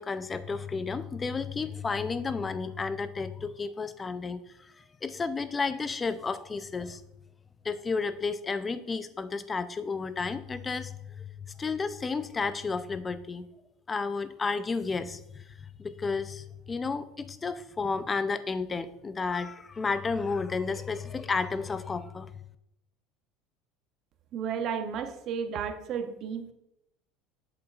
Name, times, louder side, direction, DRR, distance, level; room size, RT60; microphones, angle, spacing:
voice 1, 0.0-7.0 7.6-13.4 13.9-15.4 15.8-22.3, left 4 dB, 20° left, 13 dB, 0.4 m, -32 dB
voice 2, 24.3-26.5, right 7 dB, 45° right, 8 dB, 0.7 m, -33 dB
7.8 x 7.1 x 2.4 m, 0.82 s
cardioid pair, 140°, 0 cm